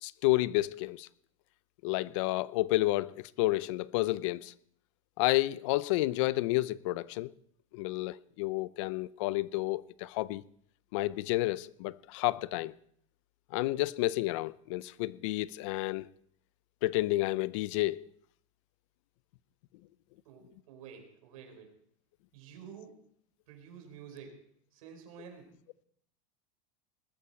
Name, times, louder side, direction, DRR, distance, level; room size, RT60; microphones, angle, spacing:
voice 1, 0.0-1.1 1.8-4.5 5.2-7.3 7.7-10.4 10.9-12.8 13.5-16.1 16.8-18.1, left 18 dB, 60° left, 0.6 m, -30 dB
voice 2, 20.2-21.7 22.3-23.0 23.5-25.5, right 7 dB, 85° right, 4.9 m, -50 dB
20.5 x 13.5 x 4.4 m
supercardioid pair, 150°, 17 cm